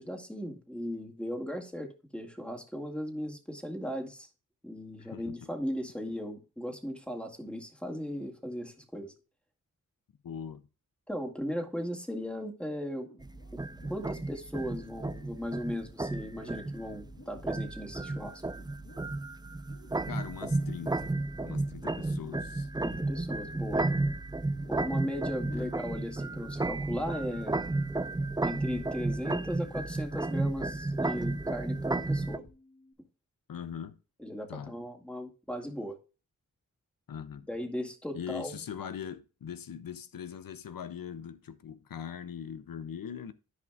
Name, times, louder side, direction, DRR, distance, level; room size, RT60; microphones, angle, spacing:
voice 1, 0.0-4.3 4.6-9.1 11.1-13.1 13.5-13.6 13.9-18.4 22.8-23.8 24.7-27.6 28.4-32.4 34.2-36.0 37.5-38.6, equal, 5° left, 2.0 m, -37 dB
voice 2, 5.0-5.4 10.2-10.7 20.1-21.1 21.4-22.7 25.5-25.7 33.5-34.0 34.5-34.8 37.1-37.5 38.1-43.3, left 8 dB, 85° left, 0.6 m, -41 dB
sound 1, 12.9-32.9, left 1 dB, 55° left, 4.3 m, -55 dB
sound 2, 13.2-32.4, right 2 dB, 15° right, 0.4 m, -33 dB
14.0 x 5.1 x 2.4 m
cardioid pair, 50°, 33 cm